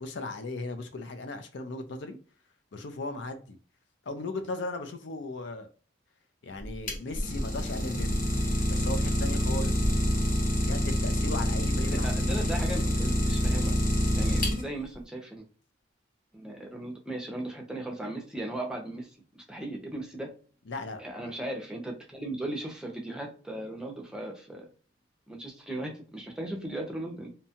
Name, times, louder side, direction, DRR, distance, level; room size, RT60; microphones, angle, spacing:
voice 1, 0.0-2.2 2.7-3.6 4.1-5.7 6.4-8.2 8.7-9.9 10.6-12.5 20.7-21.3, left 2 dB, 60° left, 7 dB, 0.5 m, -37 dB
Idling, 6.6-14.9, equal, 45° left, 0.9 m, -27 dB
voice 2, 11.9-13.7 14.2-15.5 16.3-20.3 21.0-24.7 25.3-27.3, right 1 dB, 5° right, 0 dB, 0.5 m, -37 dB
2.7 x 2.2 x 2.8 m, 0.39 s
head